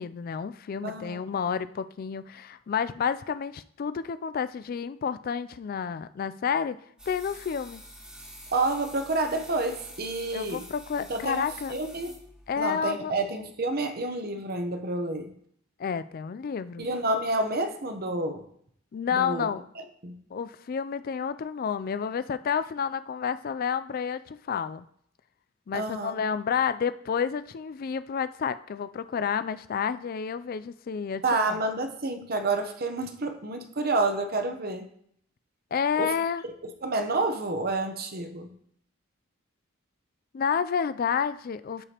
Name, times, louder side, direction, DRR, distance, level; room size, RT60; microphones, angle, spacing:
voice 1, 0.0-6.8 7.1-7.8 10.3-11.7 12.5-13.1 15.8-16.9 18.9-19.6 20.3-24.8 25.7-31.2 31.5-31.6 35.7-36.4 40.3-41.8, left 7 dB, 45° left, 14 dB, 0.3 m, -30 dB
voice 2, 0.8-1.2 8.5-10.7 11.1-12.2 12.6-15.3 16.8-18.5 19.1-19.5 20.0-20.2 25.7-26.1 31.2-34.9 36.0-36.1 36.6-38.5, right 2 dB, 45° right, 7 dB, 0.8 m, -29 dB
sound 1, 7.0-12.6, equal, 5° right, 1.4 m, -47 dB
13.5 x 4.9 x 2.9 m, 0.66 s
head